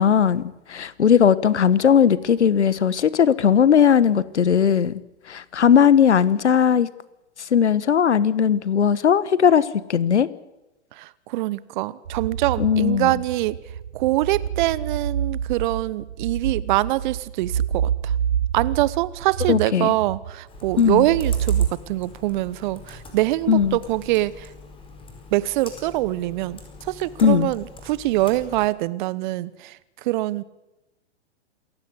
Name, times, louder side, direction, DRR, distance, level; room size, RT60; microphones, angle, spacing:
voice 1, 0.0-5.0 5.3-6.9 7.5-10.3 12.6-13.1 19.5-19.9 20.8-21.1 23.5-23.8 27.2-27.5, left 8 dB, 75° left, 1.3 m, -18 dB
voice 2, 10.9-13.6 13.9-18.1 18.5-24.5 25.3-30.4, right 17 dB, 45° right, 1.0 m, -24 dB
sound 1, 12.1-21.7, right 8 dB, 80° right, 0.8 m, -27 dB
Computer keyboard, 20.5-28.7, left 3 dB, 15° left, 5.0 m, -43 dB
27.5 x 15.5 x 8.2 m
figure-of-eight pair, 110°, 35 cm